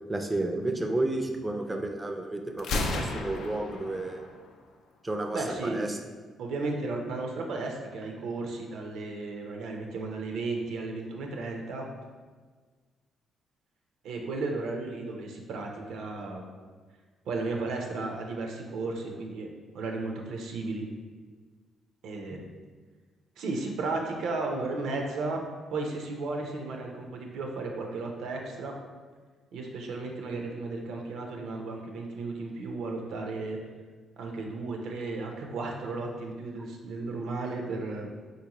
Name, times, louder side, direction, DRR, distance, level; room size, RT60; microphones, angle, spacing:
voice 1, 0.1-4.2 5.0-5.9, right 2 dB, 15° right, 4 dB, 0.4 m, -31 dB
Gunshot gunfire, 2.6-4.6, left 2 dB, 80° left, 0.4 m, -33 dB
voice 2, 5.3-5.9 6.4-11.9 14.0-16.4 17.3-20.9 22.0-22.4 23.4-25.4 25.7-28.7 29.5-33.6 34.2-38.1, right 3 dB, 80° right, 1 dB, 0.5 m, -34 dB
3.9 x 2.5 x 2.9 m, 1.5 s
cardioid pair, 90°, 0 cm